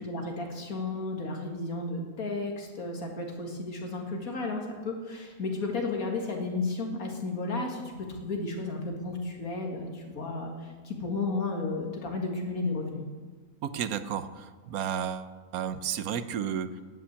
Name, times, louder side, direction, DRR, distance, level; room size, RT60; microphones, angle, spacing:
voice 1, 0.0-7.8 8.1-13.0, left 3 dB, 75° left, 1 dB, 2.4 m, -33 dB
voice 2, 13.6-16.8, right 8 dB, 80° right, 12 dB, 1.2 m, -32 dB
11.0 x 8.7 x 8.2 m, 1.4 s
omnidirectional pair, 1.5 m